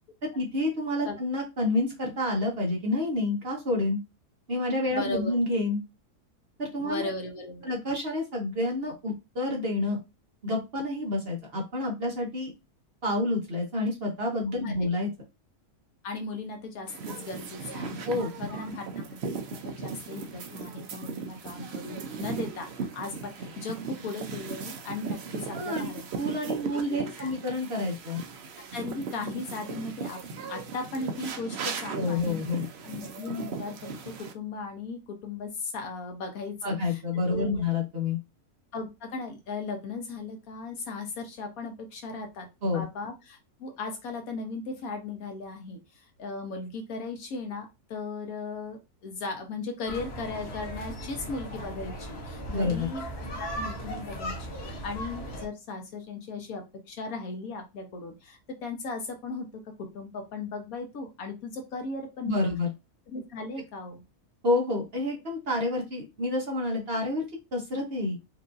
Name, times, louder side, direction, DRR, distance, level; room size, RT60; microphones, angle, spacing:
voice 1, 0.3-4.0 4.5-5.8 6.6-7.1 7.6-10.0 10.4-12.5 13.0-15.1 18.1-18.3 25.5-25.9 26.2-28.2 31.9-32.6 36.6-38.2 42.6-42.9 52.5-52.9 62.2-62.7 64.4-67.3 67.5-68.2, left 2 dB, 45° right, -1 dB, 1.1 m, -28 dB
voice 2, 4.9-5.4 6.8-7.7 14.6-14.9 16.0-18.0 18.4-19.4 19.6-26.0 26.7-27.3 28.7-30.2 30.5-32.4 32.8-33.7 34.0-37.0 37.3-37.6 38.7-42.5 42.7-53.0 53.3-59.5 59.9-62.4 63.1-64.0, left 3 dB, 65° left, 4 dB, 1.2 m, -37 dB
sound 1, 16.9-34.3, right 5 dB, 60° right, 0.7 m, -37 dB
sound 2, 49.9-55.5, equal, 45° left, 1.0 m, -37 dB
4.6 x 2.6 x 2.5 m, 0.25 s
omnidirectional pair, 1.7 m